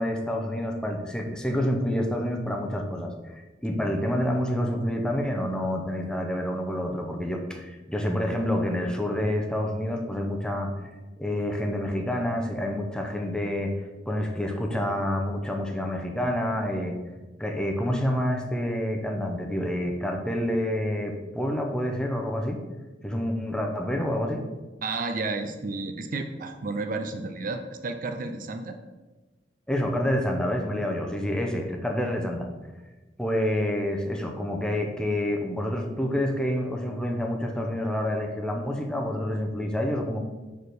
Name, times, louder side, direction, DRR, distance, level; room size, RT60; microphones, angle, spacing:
voice 1, 0.0-10.7 11.2-13.7 14.1-17.0 17.4-22.6 23.0-24.4 29.7-32.5 33.2-40.2, left 1 dB, 5° left, 2 dB, 0.7 m, -28 dB
voice 2, 24.8-28.8, right 3 dB, 50° right, 7 dB, 0.5 m, -32 dB
5.1 x 4.8 x 6.2 m, 1.2 s
head